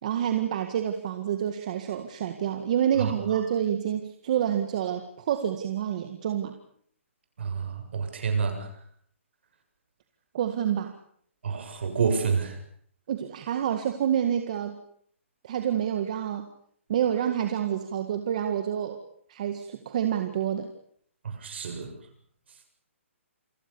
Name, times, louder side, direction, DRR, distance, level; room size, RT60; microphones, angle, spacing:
voice 1, 0.0-6.6 10.3-11.0 13.1-14.8 15.4-16.5 16.9-19.0 19.3-20.7, right 9 dB, 30° right, 7 dB, 1.8 m, -28 dB
voice 2, 7.4-8.7 11.4-12.6 21.2-21.9, right 5 dB, 55° right, 6 dB, 7.4 m, -28 dB
28.5 x 21.5 x 7.1 m, 0.63 s
hypercardioid pair, 175°, 7 cm